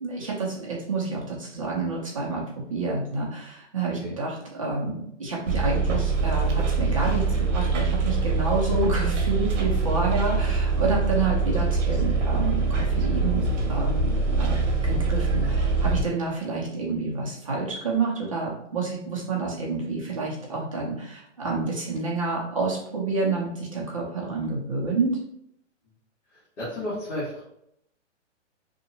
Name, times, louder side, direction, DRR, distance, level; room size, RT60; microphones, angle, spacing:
voice 1, 0.0-2.4 2.7-25.2, right 3 dB, 30° right, -3 dB, 0.5 m, -29 dB
Bus, 5.5-16.0, right 4 dB, 75° right, 0.8 m, -24 dB
voice 2, 26.3-27.4, left 1 dB, 70° left, -10 dB, 1.3 m, -33 dB
2.8 x 2.1 x 2.6 m, 0.75 s
hypercardioid pair, 170°, 37 cm